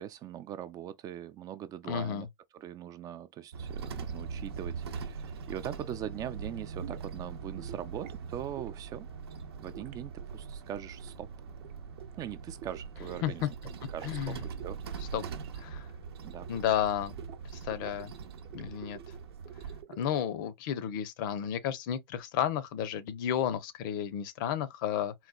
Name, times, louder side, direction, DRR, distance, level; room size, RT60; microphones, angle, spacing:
voice 1, 0.0-2.3 2.5-9.1 9.6-11.3 12.2-13.5 13.9-14.8 16.2-16.5, right 10 dB, 30° right, 0.4 m, -41 dB
voice 2, 1.9-2.3 13.2-13.5 14.0-14.4 15.1-15.2 15.5-15.9 16.5-17.1 17.6-18.1 18.5-19.0 20.0-25.1, left 10 dB, 55° left, 0.7 m, -32 dB
sound 1, 3.5-19.8, right 5 dB, 85° right, 0.7 m, -42 dB
sound 2, 6.8-7.1 7.6-8.2 8.6-8.9 9.7-11.2 11.5-11.7 12.0-13.5 13.8-14.2 14.6-14.7 15.0-15.5 15.7-16.9 17.2-18.1 18.4-20.3, right 11 dB, 55° right, 0.8 m, -49 dB
4.0 x 2.2 x 2.2 m
hypercardioid pair, 120°, 13 cm